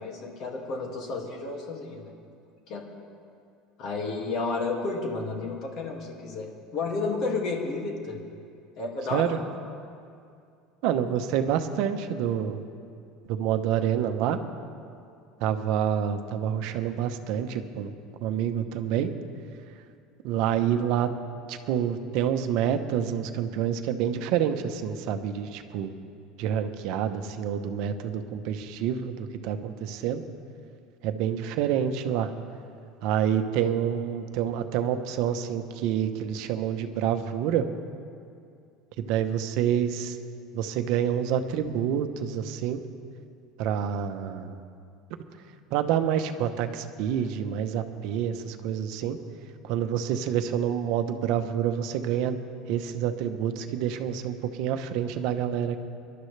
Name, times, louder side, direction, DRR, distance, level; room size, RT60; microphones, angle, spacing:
voice 1, 0.0-2.1 2.7-2.8 3.8-8.2 8.8-9.4, left 3 dB, 45° left, 1 dB, 2.1 m, -31 dB
voice 2, 10.8-12.6 13.2-14.4 15.4-17.9 18.2-19.1 20.2-21.1 21.5-25.9 26.4-30.2 31.0-32.3 33.0-37.6 39.0-40.2 40.5-42.8 43.6-44.6 45.7-49.2 49.6-52.4 52.7-55.8, right 9 dB, 60° right, 8 dB, 0.9 m, -27 dB
25.5 x 12.0 x 3.3 m, 2.4 s
cardioid pair, 155°, 0 cm